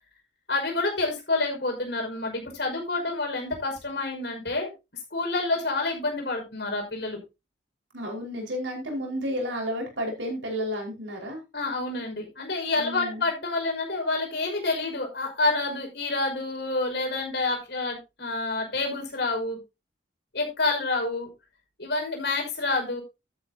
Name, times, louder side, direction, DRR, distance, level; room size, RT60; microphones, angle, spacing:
voice 1, 0.5-7.2 11.5-19.6 20.3-21.3 21.8-23.0, left 3 dB, 65° left, 1 dB, 5.7 m, -28 dB
voice 2, 7.9-11.4 12.8-13.3, equal, 85° right, 2 dB, 5.0 m, -32 dB
12.5 x 11.0 x 2.9 m, 0.26 s
head